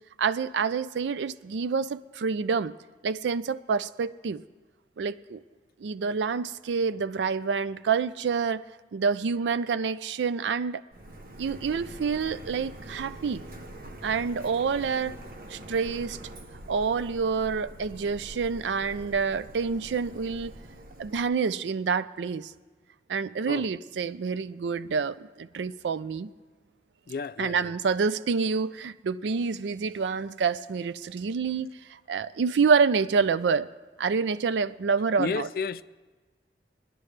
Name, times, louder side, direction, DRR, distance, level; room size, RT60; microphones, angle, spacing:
voice 1, 0.0-2.7 3.0-4.4 5.0-5.4 5.8-8.7 8.9-10.8 11.4-13.4 14.0-15.2 15.5-16.2 16.7-20.6 21.0-22.5 23.1-26.3 27.4-33.7 34.0-35.5, right 5 dB, 85° right, 0.4 m, -27 dB
Printer, 10.9-21.3, right 1 dB, 50° right, 0.8 m, -44 dB
voice 2, 27.1-27.7 35.2-35.8, left 5 dB, 55° left, 0.3 m, -32 dB
22.5 x 10.5 x 3.3 m
head